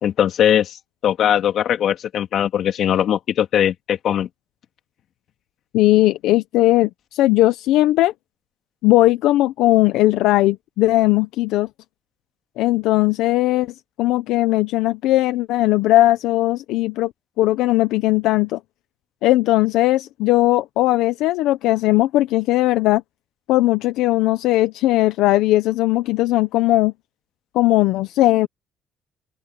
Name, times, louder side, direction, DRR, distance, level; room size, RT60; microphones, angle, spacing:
voice 1, 0.0-4.3, left 10 dB, 60° left, 2.5 m, -20 dB
voice 2, 5.7-8.1 8.8-11.7 12.6-17.1 17.4-18.6 19.2-23.0 23.5-26.9 27.5-28.5, left 16 dB, 90° left, 0.8 m, -18 dB
open air
cardioid pair, 115°, 0 cm